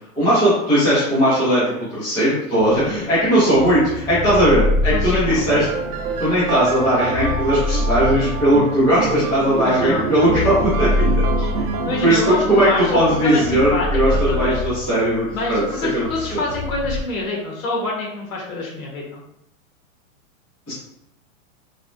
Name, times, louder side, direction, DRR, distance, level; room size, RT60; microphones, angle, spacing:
voice 1, 0.2-1.6 1.9-5.6 6.2-11.0 11.4-11.5 12.0-15.6 15.9-16.4 20.7-20.8, equal, 5° left, -12 dB, 0.4 m, -18 dB
sound 1, 2.6-17.0, left 2 dB, 50° left, 0.9 m, -26 dB
voice 2, 4.9-5.4 9.6-10.1 11.6-14.5 15.3-19.2, left 2 dB, 70° left, -2 dB, 1.2 m, -26 dB
sound 2, 5.2-12.8, right 5 dB, 90° right, 0.6 m, -27 dB
3.2 x 2.0 x 2.5 m, 0.79 s
hypercardioid pair, 155°, 43 cm